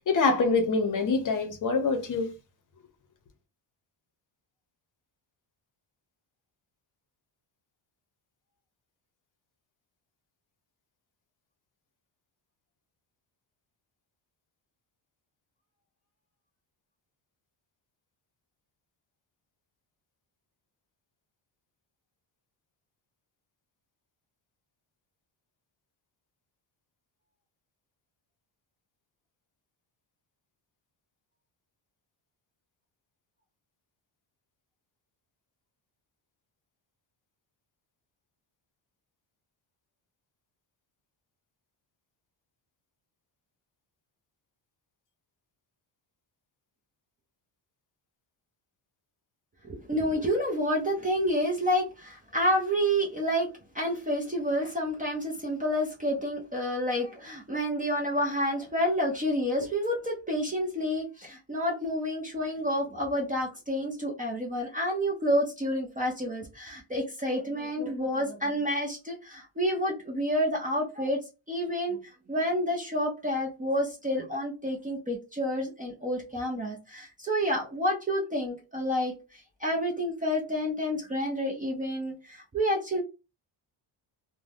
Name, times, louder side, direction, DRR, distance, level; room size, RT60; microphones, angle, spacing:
voice 1, 0.1-2.3, left 4 dB, 40° left, 0.7 m, -25 dB
voice 2, 49.6-53.5 53.7-71.2 71.5-72.0 72.3-83.0, equal, 20° right, 0.4 m, -29 dB
2.6 x 2.1 x 3.2 m
cardioid pair, 175°, 47 cm